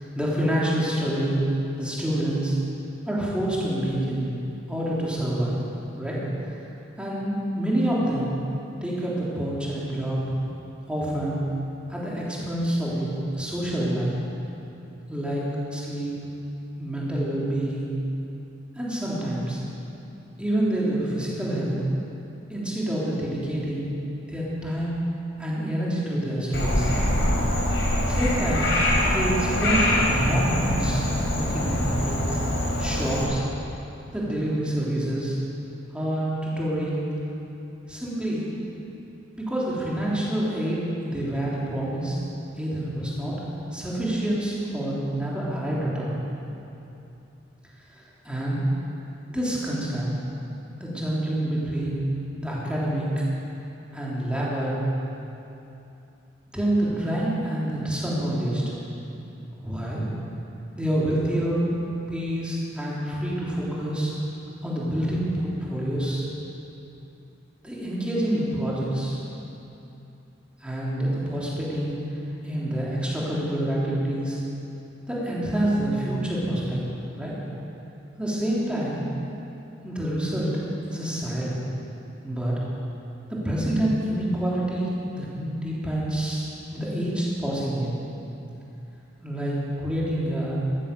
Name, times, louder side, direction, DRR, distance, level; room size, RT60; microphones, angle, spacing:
voice 1, 0.0-1.4 1.8-2.5 3.1-4.3 4.7-5.6 5.9-6.2 7.0-8.3 8.8-10.2 10.9-11.4 11.9-14.1 15.1-15.4 15.7-16.1 16.8-17.9 18.8-19.6 20.4-21.8 22.5-23.9 24.2-25.0 25.4-26.9 28.0-28.7 29.0-31.0 31.3-32.4 32.8-33.4 34.1-35.4 35.9-37.1 37.9-38.4 39.3-42.2 42.6-43.4 43.7-46.2 47.9-48.6 49.3-50.1 50.8-52.0 52.3-53.1 53.9-54.8 56.5-58.6 59.5-60.0 60.8-61.7 62.1-64.1 64.6-66.3 67.6-69.2 70.6-72.0 72.4-74.4 75.1-76.8 77.1-77.3 78.2-79.0 79.8-81.6 82.2-82.5 83.3-87.9 89.2-90.6, right 1 dB, 5° right, -7 dB, 3.4 m, -27 dB
Frog, 26.5-33.2, left 1 dB, 75° left, 4.2 m, -24 dB
14.5 x 14.0 x 7.0 m, 2.9 s
head